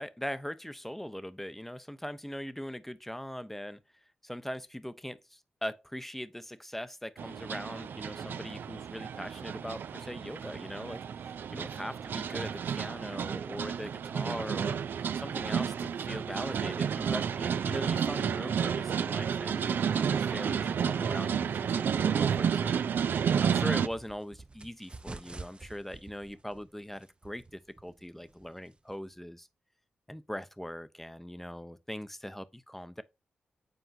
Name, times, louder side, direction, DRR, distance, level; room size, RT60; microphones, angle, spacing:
voice 1, 0.0-3.8 4.2-11.0 11.5-14.8 15.1-23.0 23.4-29.5 30.1-33.0, equal, 5° left, 0.7 m, -41 dB
sound 1, 7.2-23.9, right 7 dB, 70° right, 0.4 m, -31 dB
sound 2, 23.8-29.1, right 3 dB, 30° right, 0.6 m, -50 dB
8.0 x 4.4 x 2.6 m
supercardioid pair, 40°, 4 cm